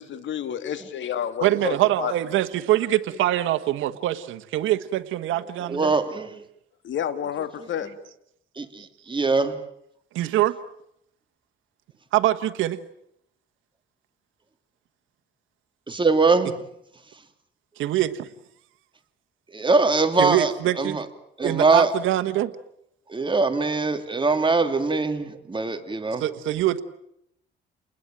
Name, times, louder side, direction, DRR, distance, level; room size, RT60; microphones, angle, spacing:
voice 1, 0.0-2.1 6.8-7.9, left 9 dB, 70° left, 10 dB, 2.6 m, -30 dB
voice 2, 1.4-5.9 10.1-10.6 12.1-12.8 17.8-18.3 20.2-21.0 21.4-22.5 26.2-26.8, right 14 dB, 85° right, 9 dB, 1.4 m, -24 dB
voice 3, 5.7-6.4 7.6-7.7 8.6-9.6 15.9-16.6 19.5-21.0 21.4-21.9 23.1-26.2, right 3 dB, 25° right, 7 dB, 2.8 m, -22 dB
29.5 x 20.5 x 9.1 m, 0.78 s
cardioid pair, 90°, 20 cm